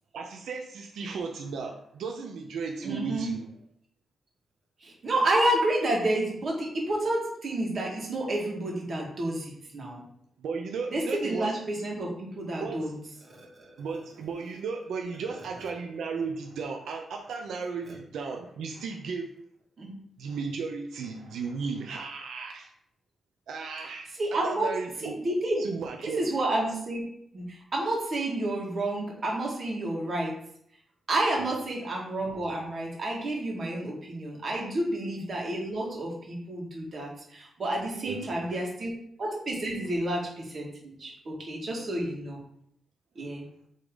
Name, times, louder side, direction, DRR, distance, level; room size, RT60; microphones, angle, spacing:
voice 1, 0.1-3.5 10.4-11.5 12.6-12.9 13.8-19.3 20.2-22.7 23.5-24.1 24.4-25.2 25.6-26.3 38.0-38.5, right 5 dB, 85° right, 3 dB, 0.6 m, -35 dB
voice 2, 2.8-3.3 4.8-10.0 10.9-12.9 13.3-13.7 19.8-20.0 24.2-24.7 25.2-25.6 26.0-27.0 27.3-30.4 31.1-38.9 39.2-42.4 43.2-43.4, right 1 dB, 40° right, -2 dB, 2.1 m, -30 dB
8.1 x 3.7 x 3.9 m, 0.69 s
wide cardioid pair, 145°, 0 cm